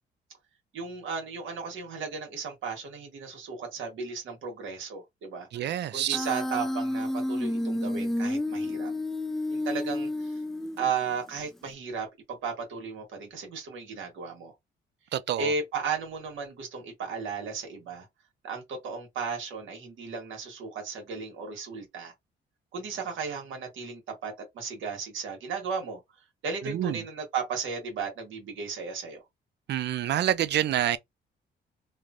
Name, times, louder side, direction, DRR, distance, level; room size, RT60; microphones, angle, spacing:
voice 1, 0.7-5.5 5.9-8.9 9.5-10.4 10.8-14.5 15.4-18.1 18.4-22.1 22.7-26.0 26.4-29.2, right 5 dB, 80° right, 1.4 m, -35 dB
voice 2, 5.5-6.2 15.1-15.5 26.6-27.0 29.7-31.0, right 11 dB, 60° right, 0.4 m, -27 dB
Human voice, 6.1-11.1, left 1 dB, ahead, 0.4 m, -30 dB
3.1 x 2.1 x 2.4 m
cardioid pair, 90°, 20 cm